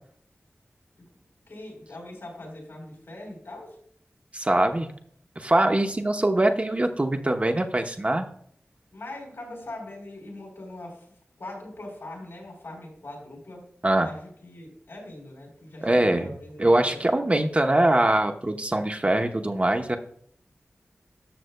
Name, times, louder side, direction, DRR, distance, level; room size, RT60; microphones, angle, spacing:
voice 1, 1.5-3.8 8.9-13.7 14.0-17.0, left 1 dB, 80° left, -1 dB, 3.4 m, -41 dB
voice 2, 4.3-4.9 5.4-8.3 13.8-14.1 15.8-16.3 16.6-20.0, right 1 dB, 30° right, 5 dB, 0.8 m, -22 dB
13.0 x 6.6 x 2.2 m, 0.64 s
wide cardioid pair, 55°, 4 cm